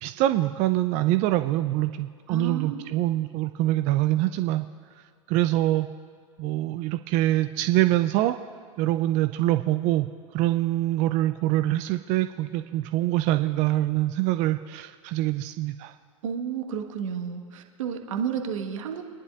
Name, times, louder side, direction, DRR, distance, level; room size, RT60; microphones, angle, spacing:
voice 1, 0.0-4.6 5.3-5.9 6.4-8.3 8.8-10.1 10.3-15.9, right 15 dB, 45° right, 10 dB, 0.5 m, -24 dB
voice 2, 2.3-3.0 16.2-19.0, right 7 dB, 70° right, 3 dB, 1.5 m, -31 dB
27.0 x 10.5 x 2.5 m, 2.1 s
hypercardioid pair, 95°, 17 cm